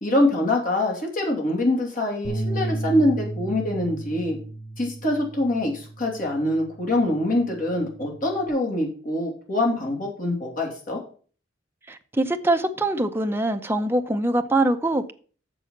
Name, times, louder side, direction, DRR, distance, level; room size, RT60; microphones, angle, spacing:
voice 1, 0.0-4.4 4.8-11.0, left 1 dB, 50° left, 2.8 m, -24 dB
sound 1, 2.2-8.5, right 1 dB, 65° left, 2.1 m, -34 dB
voice 2, 11.9-15.1, right 2 dB, 15° right, 0.7 m, -23 dB
6.9 x 6.1 x 7.1 m
head